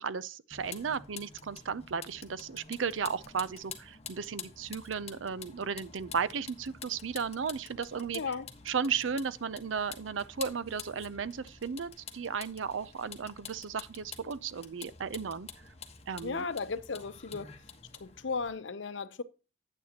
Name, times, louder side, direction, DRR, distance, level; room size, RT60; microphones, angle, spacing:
voice 1, 0.0-8.3 8.7-15.5 16.1-16.4, right 6 dB, 85° right, 0.6 m, -35 dB
Vehicle, 0.5-18.5, left 6 dB, 35° left, 1.2 m, -48 dB
voice 2, 8.1-8.5 16.2-17.5 18.0-19.2, left 4 dB, 70° left, 0.7 m, -35 dB
9.3 x 8.7 x 2.9 m
head